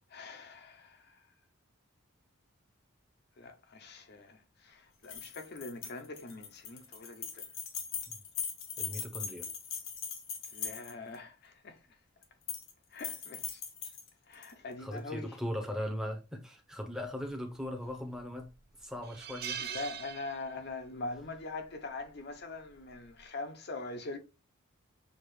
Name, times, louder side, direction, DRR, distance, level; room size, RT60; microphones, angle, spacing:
voice 1, 0.1-1.3 3.4-7.5 10.5-11.9 12.9-13.6 14.3-15.4 19.6-24.2, left 3 dB, 50° left, 0.6 m, -43 dB
sound 1, 5.0-11.2 12.2-12.7 13.0-14.5, left 7 dB, 80° left, 1.0 m, -40 dB
voice 2, 8.8-9.5 14.8-18.5 18.8-19.6, equal, 5° right, 0.7 m, -39 dB
sound 2, 17.6-18.1 18.5-18.6 19.0-20.8 21.1-21.4 22.6-22.9, right 9 dB, 50° right, 0.5 m, -42 dB
6.4 x 2.4 x 3.2 m
head